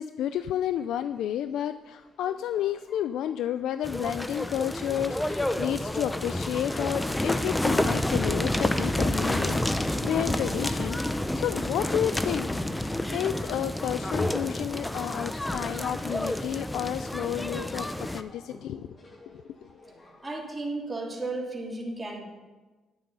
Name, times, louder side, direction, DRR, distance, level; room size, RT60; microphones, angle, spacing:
voice 1, 0.0-12.5 13.1-18.9 19.3-19.4, left 10 dB, 80° left, 11 dB, 0.3 m, -31 dB
sound 1, 1.0-20.6, left 2 dB, 40° left, 2.4 m, -54 dB
sound 2, 3.8-18.2, left 1 dB, 10° left, 0.7 m, -29 dB
voice 2, 20.2-22.3, right 2 dB, 15° right, -2 dB, 2.7 m, -34 dB
10.5 x 8.6 x 5.5 m, 1.2 s
cardioid pair, 90°, 0 cm